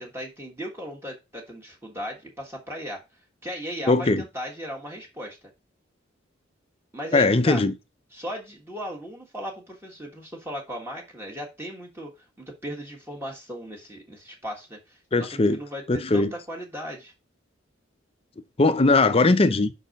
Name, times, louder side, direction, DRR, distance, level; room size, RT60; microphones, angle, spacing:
voice 1, 0.0-3.0 3.4-5.4 6.9-7.6 8.1-17.1, equal, 15° right, 1.4 m, -37 dB
voice 2, 3.9-4.2 7.1-7.7 15.1-15.6 15.9-16.3 18.6-19.7, left 3 dB, 30° left, 0.6 m, -20 dB
5.5 x 4.3 x 5.2 m
head